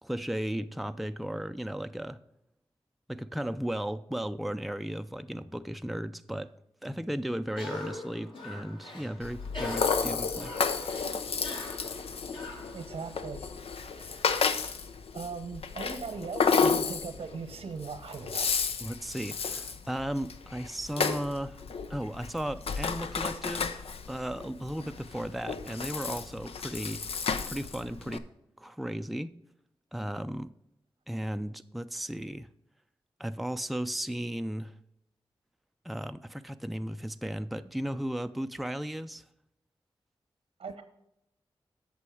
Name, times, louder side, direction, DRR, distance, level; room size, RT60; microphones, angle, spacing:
voice 1, 0.0-2.2 3.1-6.5 6.8-10.5 18.8-21.6 21.9-23.8 24.1-27.0 27.5-28.2 28.6-29.3 29.9-30.5 31.1-32.5 33.2-34.7 35.8-39.2, equal, ahead, 0.4 m, -35 dB
Cough, 7.5-13.3, left 2 dB, 60° left, 2.3 m, -43 dB
Rattle (instrument), 9.2-28.2, left 5 dB, 80° left, 0.6 m, -32 dB
voice 2, 12.7-14.6 15.1-18.5 40.6-40.8, right 5 dB, 85° right, 1.0 m, -40 dB
8.5 x 6.2 x 4.8 m
cardioid pair, 60°, 10 cm